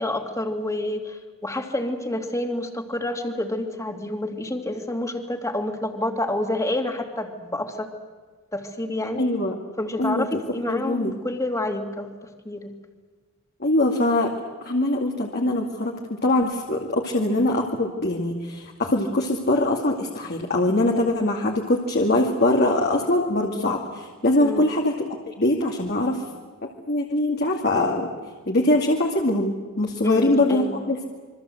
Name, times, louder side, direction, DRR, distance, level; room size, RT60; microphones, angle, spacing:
voice 1, 0.0-7.9 8.5-9.2 9.8-12.7 24.4-24.7 30.0-30.8, left 1 dB, 15° left, 3 dB, 2.6 m, -28 dB
voice 2, 9.2-9.6 10.0-10.4 10.7-11.1 13.6-14.3 14.7-24.9 25.3-26.2 26.6-28.1 28.5-31.0, left 1 dB, 50° left, 0 dB, 2.5 m, -22 dB
27.5 x 24.0 x 7.9 m, 1.4 s
head